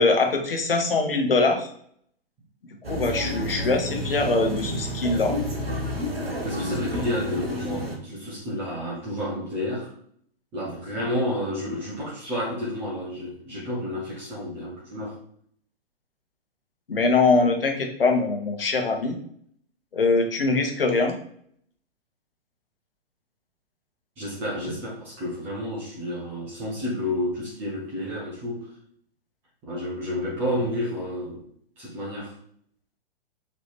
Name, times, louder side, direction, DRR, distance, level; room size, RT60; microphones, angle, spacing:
voice 1, 0.0-1.7 2.9-5.4 16.9-19.1 19.9-21.2, left 3 dB, 65° left, 3 dB, 1.0 m, -22 dB
sound 1, 2.8-8.0, equal, 70° right, 1.0 m, -30 dB
voice 2, 6.4-9.9 10.5-15.2 24.2-28.7 29.6-31.5 31.8-32.3, left 1 dB, 5° right, -7 dB, 0.4 m, -30 dB
4.0 x 2.8 x 3.4 m, 0.63 s
figure-of-eight pair, 120°, 30 cm